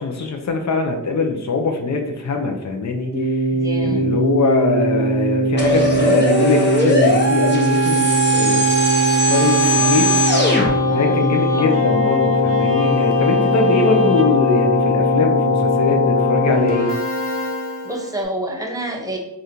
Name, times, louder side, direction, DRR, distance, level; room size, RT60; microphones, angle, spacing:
voice 1, 0.0-3.4 3.8-8.7 9.3-10.1 10.9-16.9, left 4 dB, 60° left, 3 dB, 0.6 m, -22 dB
Keyboard (musical), 3.1-18.2, left 1 dB, 30° right, 1.2 m, -20 dB
voice 2, 3.5-4.1 10.9-11.2 17.8-19.2, right 1 dB, 10° right, 1 dB, 0.7 m, -27 dB
sound 1, 5.6-10.7, right 1 dB, 35° left, 1.0 m, -18 dB
Bowed string instrument, 9.2-15.5, equal, 50° right, 0.6 m, -31 dB
3.5 x 2.5 x 2.7 m, 0.87 s
cardioid pair, 60°, 32 cm